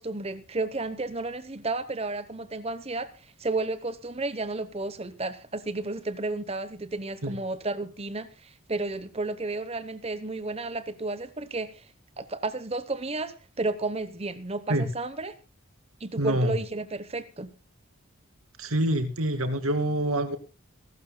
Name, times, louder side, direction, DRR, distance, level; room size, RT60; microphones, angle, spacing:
voice 1, 0.0-3.1 3.4-11.9 12.2-15.3 16.0-17.5, right 2 dB, 30° right, 0.8 m, -32 dB
voice 2, 16.2-16.6 18.6-20.4, right 1 dB, 80° right, 2.3 m, -26 dB
26.5 x 12.5 x 2.2 m
head